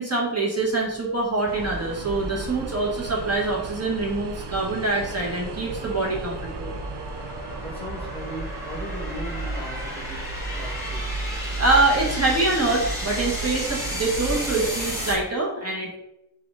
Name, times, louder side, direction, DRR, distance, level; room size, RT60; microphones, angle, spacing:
voice 1, 0.0-6.7 11.6-16.0, right 2 dB, 35° right, -3 dB, 1.4 m, -24 dB
sound 1, 0.7-15.2, equal, 10° right, 1.6 m, -35 dB
sound 2, 1.5-15.2, right 3 dB, 75° right, 0.5 m, -34 dB
voice 2, 7.6-10.2 10.5-11.1, equal, 15° left, -1 dB, 1.0 m, -38 dB
4.9 x 2.8 x 3.5 m, 0.87 s
wide cardioid pair, 60°, 41 cm